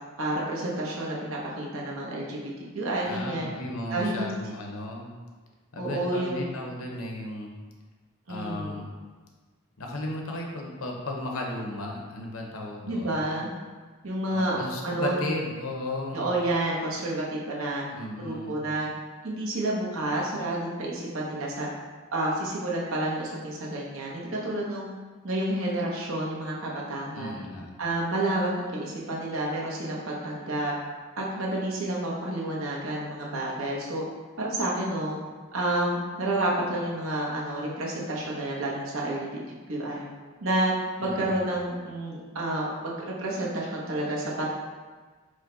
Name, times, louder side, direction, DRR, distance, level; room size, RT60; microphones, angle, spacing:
voice 1, 0.2-3.5 3.9-4.3 5.8-6.5 8.3-8.8 12.8-13.5 14.0-14.6 14.8-15.2 16.1-17.8 18.2-18.9 19.2-21.7 22.1-24.9 25.2-27.4 27.8-30.7 31.2-34.0 34.4-35.2 35.5-39.4 39.7-40.0 40.4-40.7 41.0-44.5, right 1 dB, 65° right, -4 dB, 0.9 m, -29 dB
voice 2, 3.1-5.1 5.7-7.5 8.3-8.9 9.8-13.2 14.3-16.3 17.9-18.6 27.1-27.7 41.0-41.5, left 2 dB, 75° left, 0 dB, 0.7 m, -35 dB
4.9 x 2.2 x 3.8 m, 1.4 s
head